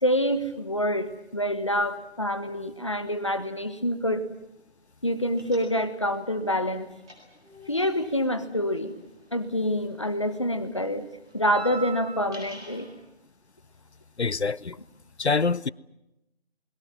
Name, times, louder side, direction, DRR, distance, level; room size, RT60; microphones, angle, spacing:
voice 1, 0.0-4.3 5.0-6.9 7.7-8.9 9.3-11.1 11.3-12.9, equal, 30° left, 1.4 m, -27 dB
sound 1, 5.4-6.1 6.4-9.8 10.0-12.9, right 4 dB, 5° right, 2.3 m, -44 dB
voice 2, 14.2-14.8 15.2-15.7, left 4 dB, 90° left, 0.9 m, -25 dB
28.5 x 22.0 x 7.3 m
figure-of-eight pair, 175°, 32 cm